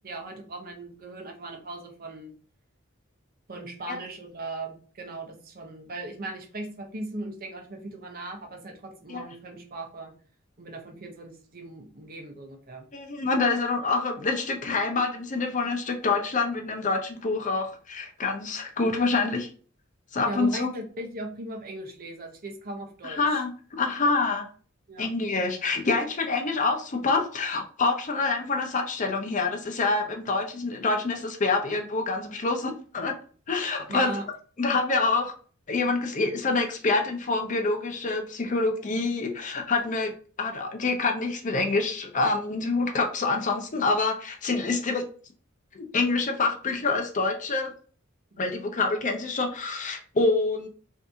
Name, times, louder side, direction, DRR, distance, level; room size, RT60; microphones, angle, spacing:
voice 1, 0.0-2.3 3.5-10.1 10.6-12.9 20.3-23.4 24.9-25.1 33.9-34.3 48.3-48.5, right 2 dB, 45° right, 4 dB, 0.7 m, -38 dB
voice 2, 12.9-19.5 20.1-20.7 23.0-24.4 25.0-33.1 33.5-34.2 34.6-35.3 35.7-40.1 40.4-45.0 45.7-47.7 48.4-50.7, left 3 dB, 40° left, 4 dB, 0.6 m, -26 dB
2.7 x 2.6 x 3.5 m, 0.41 s
head